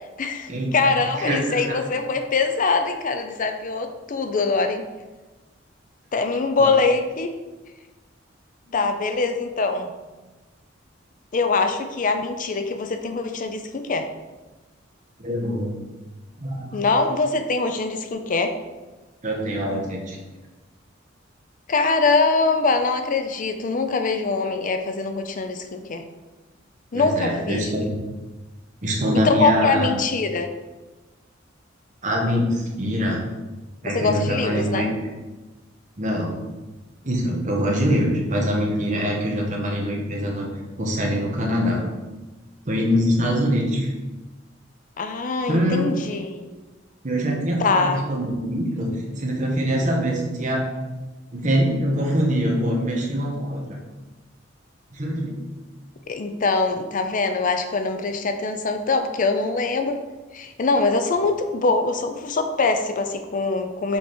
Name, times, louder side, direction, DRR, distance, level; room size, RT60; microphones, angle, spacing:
voice 1, 0.2-4.9 6.1-7.3 8.7-9.9 11.3-14.1 16.7-18.5 21.7-26.0 26.9-27.7 29.2-30.5 33.8-34.9 45.0-46.5 47.6-48.1 56.1-60.0 60.3-64.0, left 3 dB, 45° left, 7 dB, 0.5 m, -23 dB
voice 2, 1.2-1.6 6.6-6.7 8.7-8.9 15.2-15.7 16.4-16.9 19.2-20.2 26.9-28.0 28.8-29.9 32.0-33.2 33.8-34.9 36.0-36.4 37.0-40.5 40.8-41.8 42.7-43.9 45.5-45.9 47.0-50.6 51.3-53.8 54.9-55.3, equal, 40° right, -1 dB, 1.3 m, -24 dB
5.7 x 4.7 x 4.4 m, 1.2 s
head